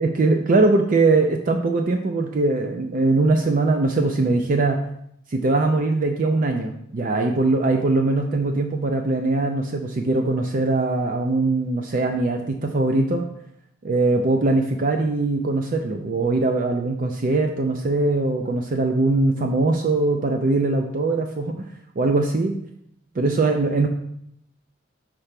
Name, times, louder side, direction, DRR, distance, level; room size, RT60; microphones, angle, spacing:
voice 1, 0.0-4.8 5.3-13.2 13.8-21.6 22.0-22.5 23.2-23.9, right 3 dB, 40° right, 4 dB, 0.4 m, -21 dB
5.8 x 3.3 x 5.7 m, 0.74 s
head